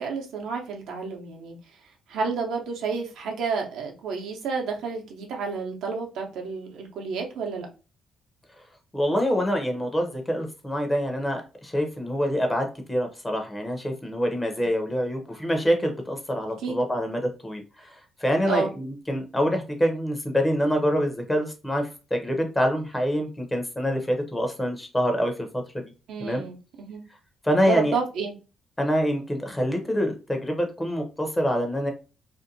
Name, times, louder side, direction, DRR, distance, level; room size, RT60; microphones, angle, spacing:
voice 1, 0.0-1.6 2.1-7.7 16.6-16.8 18.5-18.7 26.1-27.0 27.6-28.3, right 5 dB, 80° right, 2 dB, 0.6 m, -30 dB
voice 2, 8.9-25.8 26.2-26.4 27.4-27.9 28.8-31.9, equal, 15° left, 3 dB, 0.7 m, -26 dB
2.6 x 2.2 x 2.6 m, 0.33 s
cardioid pair, 90°, 0 cm